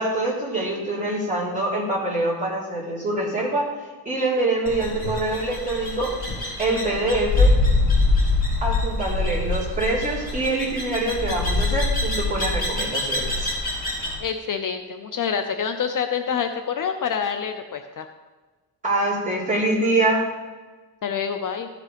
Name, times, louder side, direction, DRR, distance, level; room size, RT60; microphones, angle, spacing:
voice 1, 0.0-3.7 4.1-6.1 6.6-7.5 8.6-13.5 18.8-20.3, right 2 dB, 20° right, -7 dB, 3.5 m, -24 dB
sound 1, 4.7-14.2, left 2 dB, 20° left, 3.2 m, -24 dB
voice 2, 14.2-18.1 21.0-21.7, left 7 dB, 50° left, 7 dB, 0.6 m, -27 dB
14.0 x 5.0 x 5.1 m, 1.3 s
wide cardioid pair, 140°, 41 cm